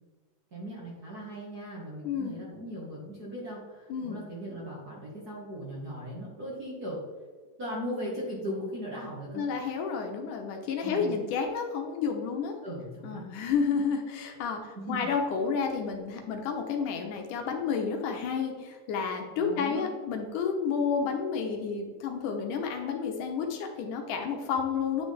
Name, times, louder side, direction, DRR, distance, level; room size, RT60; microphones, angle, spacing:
voice 1, 0.5-7.0 7.6-9.4 10.8-11.2 12.6-13.3 14.7-15.1 19.4-19.9, equal, 40° right, -5 dB, 1.5 m, -38 dB
voice 2, 2.0-2.4 3.9-4.2 9.4-12.6 13.0-25.1, left 6 dB, 75° left, 3 dB, 2.4 m, -31 dB
10.0 x 6.0 x 3.4 m, 1.4 s
omnidirectional pair, 3.8 m